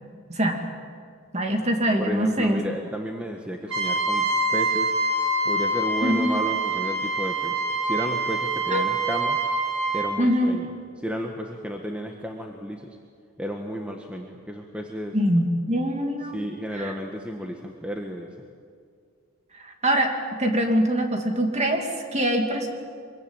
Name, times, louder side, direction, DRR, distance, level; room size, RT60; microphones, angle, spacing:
voice 1, 0.3-0.6 1.3-2.6 6.0-6.4 8.7-8.8 10.2-10.6 15.1-16.4 16.8-16.9 19.6-22.7, equal, 30° right, 3 dB, 2.8 m, -23 dB
voice 2, 2.0-4.9 5.4-9.4 9.9-10.7 11.0-12.9 13.4-15.2 16.3-18.3, equal, 5° right, 2 dB, 1.4 m, -32 dB
Trumpet, 3.7-10.1, right 2 dB, 65° right, 6.0 m, -25 dB
24.0 x 22.5 x 9.1 m, 2.1 s
head